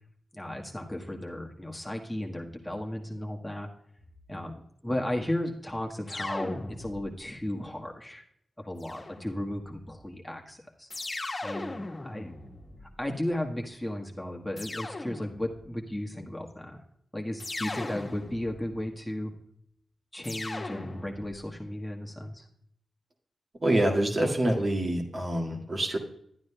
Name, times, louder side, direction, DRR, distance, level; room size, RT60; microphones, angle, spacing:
voice 1, 0.3-3.7 4.3-8.2 8.6-10.9 11.4-12.3 13.0-16.8 17.1-19.3 20.1-22.5, left 1 dB, 10° left, 0 dB, 1.4 m, -35 dB
sound 1, 6.1-7.3 8.8-9.6 10.9-13.2 14.6-15.7 17.4-18.7 20.2-21.5, left 2 dB, 40° left, 1.3 m, -38 dB
voice 2, 23.6-26.0, right 1 dB, 50° right, 0 dB, 1.8 m, -26 dB
12.0 x 9.3 x 2.2 m, 0.68 s
cardioid pair, 45°, 0 cm